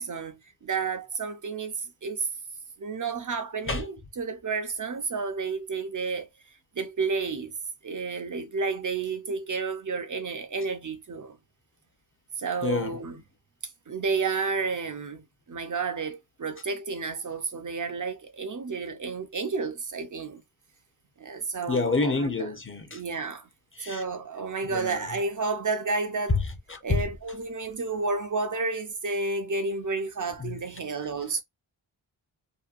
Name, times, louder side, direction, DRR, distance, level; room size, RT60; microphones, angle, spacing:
voice 1, 0.0-1.7 2.0-2.3 2.8-6.3 6.8-7.5 7.8-11.4 12.4-13.2 13.9-20.4 21.2-22.5 22.9-23.5 23.8-26.4 26.8-31.4, right 4 dB, 40° right, 0.7 m, -31 dB
voice 2, 12.6-13.0 21.7-23.0 23.8-24.0 24.7-25.0 26.3-26.4 26.7-27.0 30.4-30.6, left 3 dB, 25° left, 0.8 m, -27 dB
2.7 x 2.2 x 2.5 m
cardioid pair, 45°, 48 cm